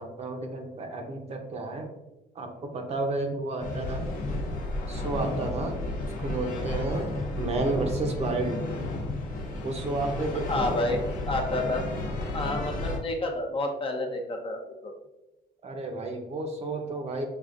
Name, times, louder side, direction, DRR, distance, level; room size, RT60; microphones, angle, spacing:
voice 1, 0.0-1.9 2.3-4.1 4.9-5.8 6.2-7.1 7.4-8.6 9.6-10.7 15.6-17.2, right 2 dB, 40° right, 3 dB, 0.7 m, -31 dB
sound 1, 3.6-13.0, left 2 dB, 50° left, 0.9 m, -32 dB
voice 2, 10.5-11.0 11.3-11.9 12.3-14.9, left 2 dB, 30° left, 2 dB, 0.6 m, -29 dB
6.3 x 2.4 x 2.5 m, 1.0 s
cardioid pair, 110°, 17 cm